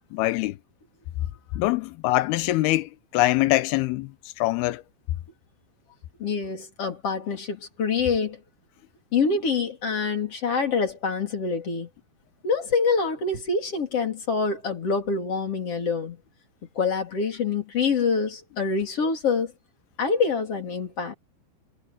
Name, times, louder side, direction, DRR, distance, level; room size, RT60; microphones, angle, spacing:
voice 1, 0.1-0.6 1.5-4.1 4.4-4.8, left 18 dB, 75° left, 2.4 m, -23 dB
voice 2, 6.2-8.4 9.1-11.9 12.4-16.2 16.7-19.5 20.0-21.1, left 5 dB, 35° left, 4.1 m, -26 dB
omnidirectional pair, 5.0 m